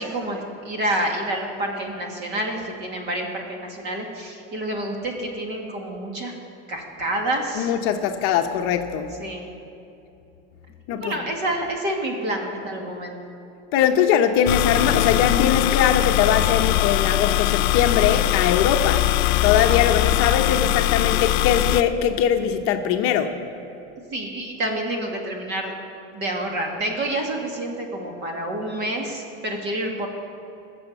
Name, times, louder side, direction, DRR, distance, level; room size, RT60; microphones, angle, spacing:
voice 1, 0.0-6.3 6.7-7.7 9.2-9.5 10.9-13.2 24.1-25.7 26.1-30.1, right 1 dB, 35° right, 1 dB, 2.3 m, -28 dB
voice 2, 7.5-9.1 10.9-11.2 13.7-19.1 19.4-23.4, left 8 dB, 45° left, 5 dB, 0.9 m, -21 dB
sound 1, 14.5-21.8, left 15 dB, 80° left, 0.7 m, -21 dB
19.5 x 7.1 x 8.1 m, 2.8 s
supercardioid pair, 165°, 31 cm